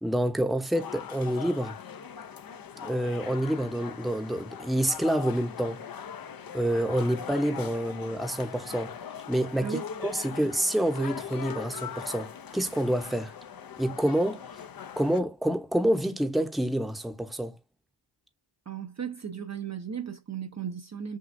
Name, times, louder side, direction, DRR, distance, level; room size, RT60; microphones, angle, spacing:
voice 1, 0.0-1.8 2.8-5.8 6.5-8.9 9.3-13.3 13.8-14.5 15.0-17.5, right 1 dB, ahead, 0.8 m, -28 dB
sound 1, 0.7-15.2, left 8 dB, 45° left, 0.7 m, -41 dB
voice 2, 18.7-21.2, right 7 dB, 35° right, 0.7 m, -36 dB
6.4 x 2.3 x 2.6 m
cardioid pair, 45°, 49 cm